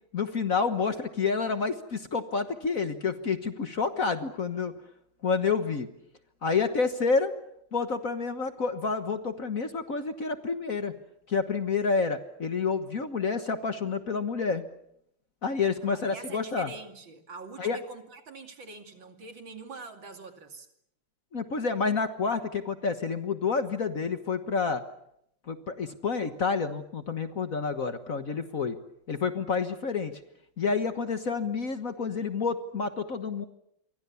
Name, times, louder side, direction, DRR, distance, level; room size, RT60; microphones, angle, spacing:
voice 1, 0.1-4.7 5.2-5.9 6.4-7.3 7.7-10.9 11.3-14.7 15.4-16.7 17.6-17.8 21.3-24.8 25.5-28.8 29.1-30.1 30.6-33.4, left 5 dB, 45° left, 1.5 m, -29 dB
voice 2, 15.8-20.7, right 4 dB, 65° right, 3.3 m, -44 dB
28.5 x 24.5 x 7.0 m
omnidirectional pair, 2.3 m